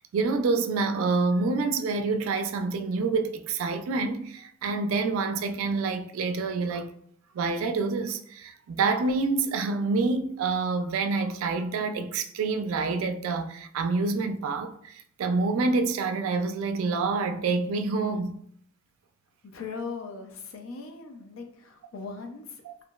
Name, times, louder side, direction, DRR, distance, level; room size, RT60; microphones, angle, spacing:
voice 1, 0.1-6.9 7.3-18.4 22.7-22.8, right 3 dB, 90° right, 0.3 m, -27 dB
voice 2, 19.4-22.6, left 4 dB, 80° left, 0.5 m, -39 dB
2.8 x 2.5 x 2.2 m
head